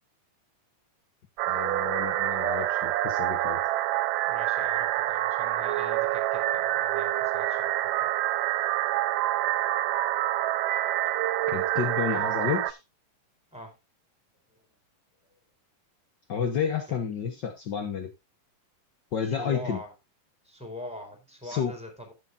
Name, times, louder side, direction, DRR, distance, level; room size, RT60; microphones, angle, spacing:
sound 1, 1.4-12.7, right 15 dB, 80° right, 2.2 m, -27 dB
voice 1, 1.5-3.6 11.5-12.8 16.3-18.1 19.1-19.8 21.4-21.7, left 7 dB, 65° left, 5 dB, 1.0 m, -30 dB
voice 2, 4.3-8.1 13.5-13.8 14.5-14.6 19.2-19.9 20.4-22.1, left 1 dB, ahead, 4 dB, 3.9 m, -43 dB
12.5 x 9.8 x 2.6 m, 0.23 s
omnidirectional pair, 3.8 m